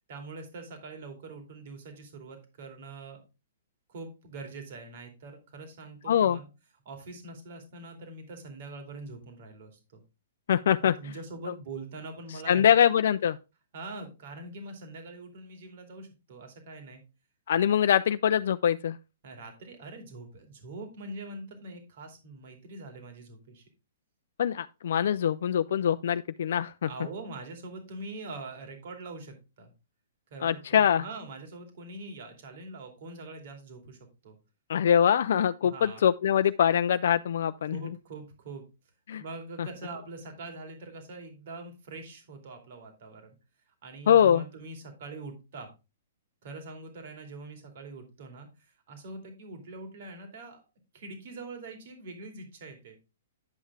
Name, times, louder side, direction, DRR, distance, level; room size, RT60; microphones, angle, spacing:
voice 1, 0.1-3.2 3.9-6.5 6.8-10.0 10.8-12.8 13.7-17.0 19.2-23.6 26.8-29.7 30.3-34.4 35.6-36.1 37.6-38.6 39.2-43.4 43.8-45.7 46.4-50.6 50.9-53.0, right 3 dB, 55° right, 2.7 m, -43 dB
voice 2, 6.1-6.4 10.5-10.9 12.5-13.4 17.5-19.0 24.4-26.9 30.4-31.0 34.7-37.8 39.1-39.2 44.1-44.4, left 9 dB, 65° left, 0.4 m, -23 dB
10.0 x 5.5 x 3.6 m
hypercardioid pair, 150°, 0 cm